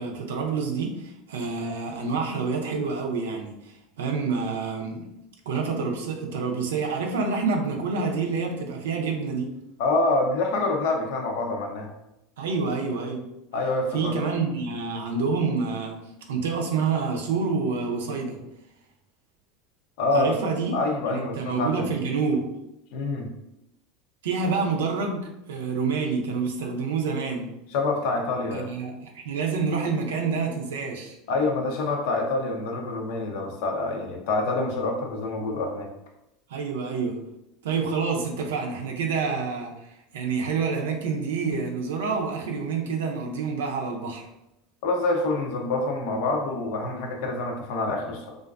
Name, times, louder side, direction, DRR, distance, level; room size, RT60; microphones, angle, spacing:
voice 1, 0.0-3.5 4.0-5.1 5.5-9.5 12.4-13.2 13.9-16.0 16.3-18.4 20.1-20.8 21.1-22.5 24.2-27.5 28.5-31.2 36.5-37.2 37.6-44.2, right 4 dB, 85° right, 1 dB, 0.4 m, -27 dB
voice 2, 9.8-11.9 13.5-14.2 20.0-20.3 20.7-21.9 22.9-23.3 27.7-28.7 31.3-35.9 44.8-48.4, left 2 dB, 70° left, 2 dB, 0.5 m, -26 dB
2.4 x 2.2 x 2.4 m, 0.87 s
hypercardioid pair, 95°, 0 cm